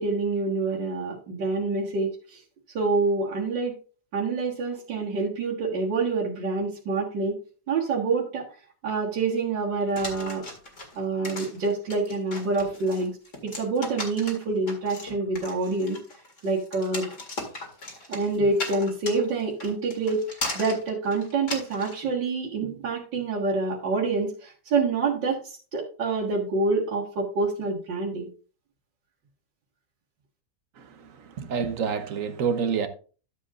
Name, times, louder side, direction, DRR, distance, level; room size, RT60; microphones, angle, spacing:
voice 1, 0.0-2.4 2.7-3.7 4.1-7.3 7.7-8.5 8.8-10.4 11.0-13.2 13.4-16.0 16.4-17.1 18.1-28.3, right 3 dB, 85° right, 2.4 m, -27 dB
sound 1, 10.0-22.0, left 2 dB, 45° left, 2.4 m, -37 dB
voice 2, 30.8-32.9, right 6 dB, 55° right, 1.1 m, -28 dB
12.5 x 7.5 x 2.5 m
omnidirectional pair, 1.9 m